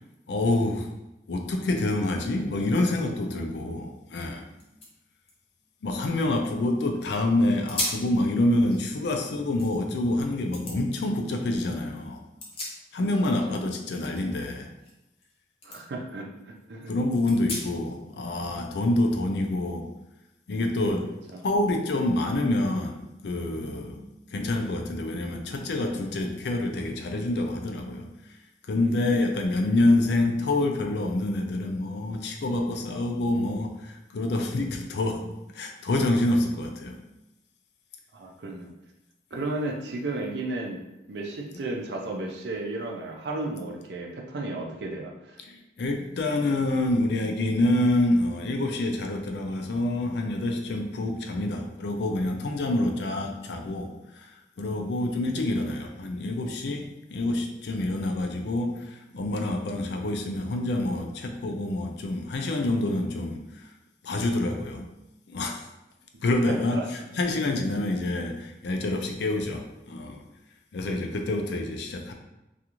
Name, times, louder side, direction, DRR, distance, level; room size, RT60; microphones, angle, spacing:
voice 1, 0.3-0.9 1.3-4.5 5.8-12.2 12.9-14.7 16.9-19.9 20.5-21.2 21.4-28.3 28.7-37.0 39.3-39.4 45.4-63.7 64.0-64.9 65.3-65.7 66.2-70.2 70.7-72.1, left 2 dB, 75° left, 3 dB, 0.4 m, -27 dB
sound 1, 4.2-4.3 4.5-6.8 7.2-7.3 7.7-8.1 8.5-10.0 10.5-10.8 12.1-13.3 13.5-15.3 15.6-15.8 16.3-16.4 17.3-18.0, left 1 dB, 35° left, 0.7 m, -37 dB
voice 2, 13.2-13.6 15.6-16.9 21.3-21.4 28.8-29.2 38.1-38.7 39.3-40.8 41.1-45.4 66.5-66.9, right 2 dB, 75° right, 1 dB, 0.5 m, -34 dB
2.4 x 2.4 x 2.9 m, 0.93 s
head